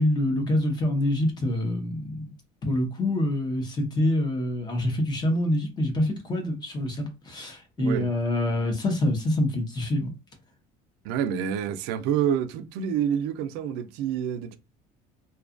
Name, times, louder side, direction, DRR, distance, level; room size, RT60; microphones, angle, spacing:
voice 1, 0.0-2.3 2.6-10.1, left 1 dB, 25° left, 0.7 m, -26 dB
voice 2, 7.8-8.1 11.0-14.6, right 8 dB, 90° right, 0.4 m, -28 dB
2.7 x 2.3 x 2.4 m
cardioid pair, 155°, 17 cm